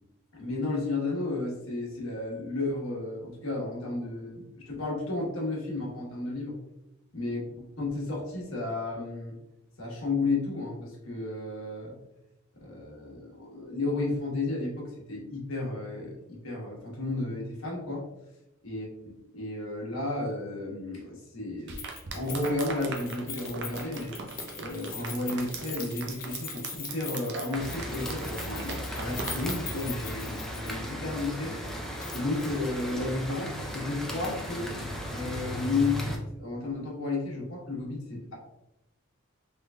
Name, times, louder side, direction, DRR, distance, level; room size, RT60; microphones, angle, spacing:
voice 1, 0.3-6.5 7.1-9.3 9.8-12.0 12.6-18.0 18.6-18.9 19.3-21.8 22.1-24.1 24.6-31.6 32.1-34.7 35.1-38.3, left 2 dB, 70° left, -2 dB, 1.2 m, -33 dB
sound 1, 21.7-29.5, right 4 dB, 55° right, 0.5 m, -40 dB
Keys jangling, 21.8-30.9 31.2-31.3 32.0-32.5 32.8-32.9, left 6 dB, 45° left, 0.7 m, -42 dB
sound 2, 27.5-36.2, equal, ahead, 0.5 m, -36 dB
3.7 x 3.2 x 2.3 m, 0.91 s
head